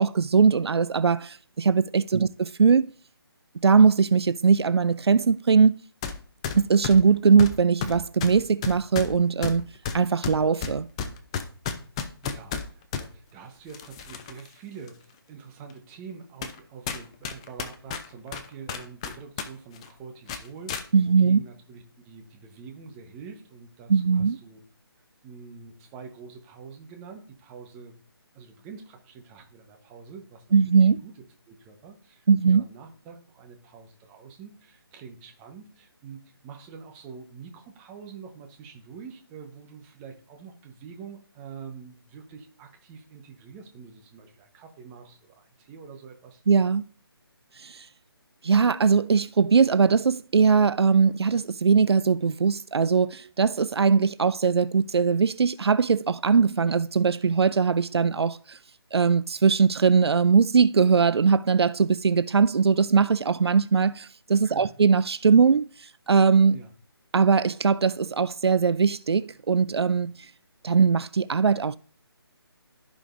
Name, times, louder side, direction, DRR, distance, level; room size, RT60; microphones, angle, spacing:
voice 1, 0.0-2.9 3.6-5.8 6.5-9.6 9.9-10.9 20.9-21.4 23.9-24.4 30.5-31.0 32.3-32.6 46.5-46.8 47.6-47.8 48.4-58.6 58.9-65.6 66.1-66.6 67.1-70.1 70.6-71.8, right 5 dB, 80° right, 0.4 m, -20 dB
sound 1, 6.0-6.2 6.4-13.1 13.7-14.5 14.9-15.0 15.7-15.8 16.4-16.6 16.9-19.5 19.7-19.9 20.3-20.8, left 7 dB, 15° left, 0.4 m, -32 dB
voice 2, 12.2-24.6 25.2-28.0 28.3-46.4 64.4-64.8 66.5-66.7, right 6 dB, 15° right, 1.0 m, -45 dB
15.0 x 5.1 x 2.5 m
figure-of-eight pair, 155°, 13 cm